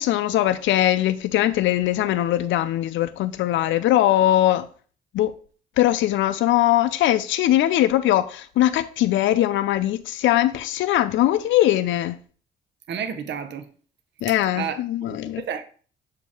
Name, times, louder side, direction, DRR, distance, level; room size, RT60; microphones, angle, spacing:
voice 1, 0.0-4.7 5.1-5.3 5.8-12.2 14.2-15.4, left 13 dB, 75° left, 0.4 m, -21 dB
voice 2, 12.9-13.7 14.6-14.8 15.0-15.6, right 8 dB, 65° right, 0.7 m, -31 dB
6.9 x 2.8 x 4.9 m
cardioid pair, 90°, 20 cm